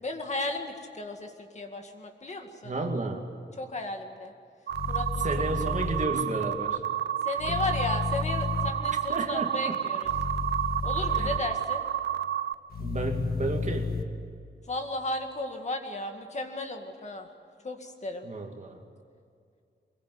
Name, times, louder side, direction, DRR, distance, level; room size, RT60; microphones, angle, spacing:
voice 1, 0.0-2.8 3.6-4.3 4.9-5.3 7.3-10.1 10.8-11.8 14.7-17.3 17.6-18.2, left 2 dB, 40° left, 4 dB, 2.1 m, -34 dB
voice 2, 2.6-3.2 5.2-6.8 7.5-7.6 9.1-9.8 11.1-11.3 12.8-14.0 18.2-18.8, right 3 dB, 40° right, 3 dB, 2.5 m, -32 dB
sound 1, 4.7-6.0 7.4-8.7 10.1-11.4 12.7-14.0, left 4 dB, 55° left, 1.6 m, -32 dB
sound 2, 4.7-12.5, right 10 dB, 70° right, 0.7 m, -30 dB
24.0 x 21.5 x 9.5 m, 2.3 s
wide cardioid pair, 175°, 19 cm